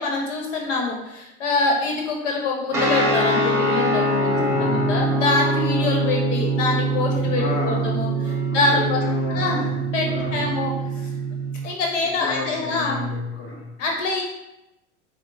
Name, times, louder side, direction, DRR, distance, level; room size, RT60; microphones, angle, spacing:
voice 1, 0.0-9.0 9.3-9.6 9.9-11.1 11.6-13.0 13.8-14.2, left 3 dB, 80° left, 0 dB, 0.9 m, -25 dB
sound 1, 2.7-11.7, right 1 dB, 5° right, 1.0 m, -24 dB
sound 2, 2.8-11.5, right 6 dB, 30° right, 0.4 m, -33 dB
voice 2, 4.4-4.9 7.3-8.0 8.5-10.6 12.0-13.7, left 3 dB, 25° left, -6 dB, 0.9 m, -31 dB
5.1 x 2.1 x 4.0 m, 0.92 s
supercardioid pair, 120°, 36 cm